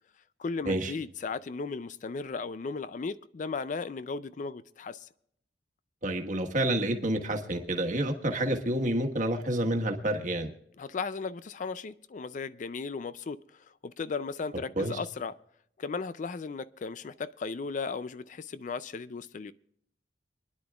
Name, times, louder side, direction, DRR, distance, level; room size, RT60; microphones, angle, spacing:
voice 1, 0.4-5.1 10.8-15.4 15.8-19.5, left 4 dB, 40° left, 0.4 m, -36 dB
voice 2, 6.0-10.5 14.8-15.0, right 1 dB, 45° right, 1.4 m, -29 dB
26.5 x 10.5 x 2.3 m
head